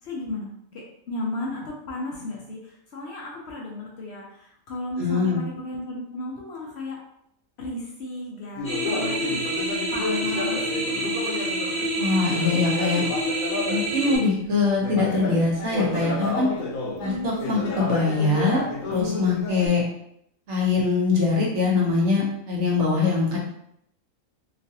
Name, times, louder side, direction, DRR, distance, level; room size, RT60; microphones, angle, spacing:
voice 1, 0.0-7.0 7.6-9.4 9.9-11.0 17.0-17.4, left 2 dB, 60° left, -2 dB, 0.8 m, -34 dB
voice 2, 5.0-5.4 12.0-13.0 13.7-16.5 17.0-18.6 18.9-19.8 20.5-23.4, left 4 dB, 60° right, -4 dB, 1.1 m, -23 dB
Conversation, 8.5-14.3 14.8-19.7, left 3 dB, 85° left, 1.0 m, -31 dB
sound 1, 8.6-14.2, right 1 dB, 5° left, 1.0 m, -27 dB
3.0 x 2.5 x 2.7 m, 0.74 s
omnidirectional pair, 1.4 m